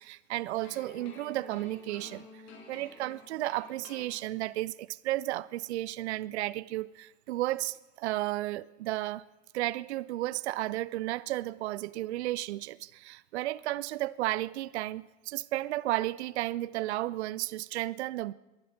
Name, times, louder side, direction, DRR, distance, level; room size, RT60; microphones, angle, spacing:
voice 1, 0.0-2.3 2.7-9.2 9.5-18.3, right 16 dB, 60° right, 0.5 m, -33 dB
sound 1, 0.6-4.7, left 3 dB, 45° left, 5.3 m, -51 dB
22.5 x 11.5 x 5.2 m
figure-of-eight pair, 90°, 39 cm